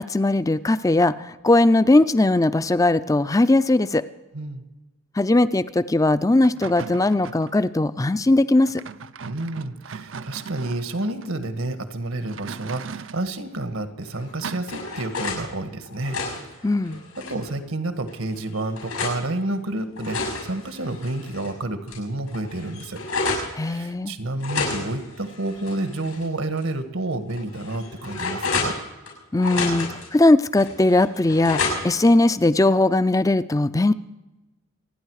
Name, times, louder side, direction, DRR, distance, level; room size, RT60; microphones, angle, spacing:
voice 1, 0.0-4.0 5.2-8.8 16.6-17.0 23.6-24.1 29.3-33.9, left 2 dB, 15° left, 15 dB, 0.4 m, -19 dB
sound 1, 6.4-7.6 8.6-11.3 12.2-13.3 14.4-14.6, right 5 dB, 60° right, 0.5 m, -38 dB
voice 2, 9.3-16.2 17.3-23.0 23.5-28.7, right 2 dB, 80° right, 9 dB, 1.6 m, -30 dB
sound 2, 14.1-15.4 15.9-17.5 18.1-19.2 19.8-21.5 21.9-22.0 22.3-23.5 24.4-26.2 26.6-26.7 27.3-29.1 29.4-30.1 30.6-32.1, left 3 dB, 90° left, 6.7 m, -30 dB
27.5 x 10.0 x 4.8 m, 1.1 s
head